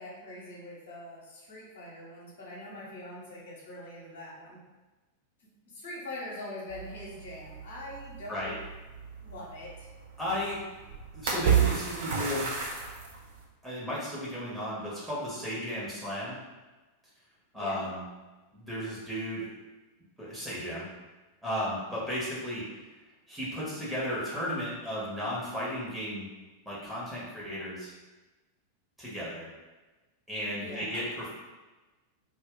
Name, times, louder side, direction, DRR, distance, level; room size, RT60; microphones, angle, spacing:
voice 1, 0.0-4.6 5.7-8.5 9.2-9.9 11.4-11.7 17.5-17.9 30.5-31.0, left 1 dB, 60° left, -5 dB, 0.9 m, -43 dB
sound 1, 6.7-13.4, right 7 dB, 55° right, 0.6 m, -32 dB
voice 2, 10.2-10.6 11.1-12.6 13.6-16.4 17.5-18.0 18.5-19.5 20.2-20.9 21.4-22.6 23.3-26.3 26.7-27.9 29.0-29.5 30.3-31.3, equal, 5° right, -8 dB, 1.0 m, -34 dB
2.4 x 2.2 x 3.6 m, 1.2 s
figure-of-eight pair, 90°, 0 cm